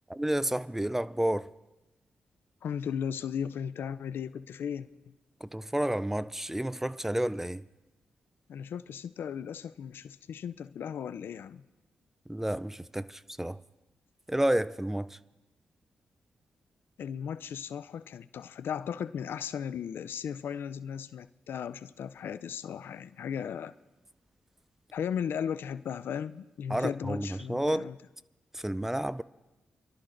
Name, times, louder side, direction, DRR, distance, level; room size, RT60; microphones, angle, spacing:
voice 1, 0.1-1.5 5.4-7.6 12.3-13.6 14.3-15.2 26.7-27.9 28.5-29.2, right 1 dB, 10° right, 0.4 m, -30 dB
voice 2, 2.6-4.9 8.5-11.6 17.0-23.7 24.9-28.0, left 8 dB, 75° left, 0.4 m, -36 dB
27.5 x 12.5 x 2.6 m
cardioid pair, 55°, 4 cm